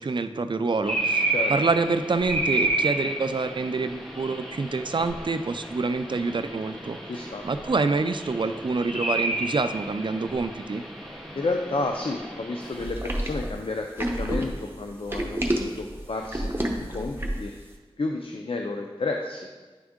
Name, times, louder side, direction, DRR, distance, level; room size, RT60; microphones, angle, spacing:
voice 1, 0.0-7.0 7.4-10.8, right 3 dB, 55° right, 9 dB, 0.4 m, -27 dB
sound 1, 0.8-12.8, right 2 dB, 5° left, 1.7 m, -31 dB
voice 2, 7.1-7.4 11.3-17.5 18.0-19.5, left 3 dB, 70° left, 3 dB, 0.5 m, -31 dB
sound 2, 12.8-17.5, right 1 dB, 25° right, 0.9 m, -29 dB
9.7 x 3.5 x 3.7 m, 1.4 s
wide cardioid pair, 40°, 10 cm